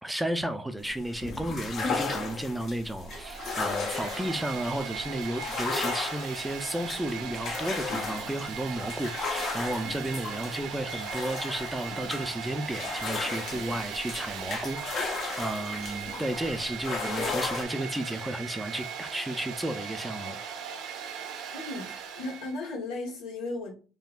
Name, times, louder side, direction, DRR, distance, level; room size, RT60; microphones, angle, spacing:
voice 1, 0.0-20.4, right 1 dB, 5° right, 0.4 m, -33 dB
sound 1, 0.8-17.6, left 4 dB, 50° left, 0.7 m, -35 dB
Domestic sounds home sounds, 3.0-22.6, right 7 dB, 70° right, 0.6 m, -39 dB
voice 2, 21.5-23.7, left 2 dB, 85° left, 1.3 m, -36 dB
3.4 x 2.2 x 2.4 m
supercardioid pair, 80°, 0 cm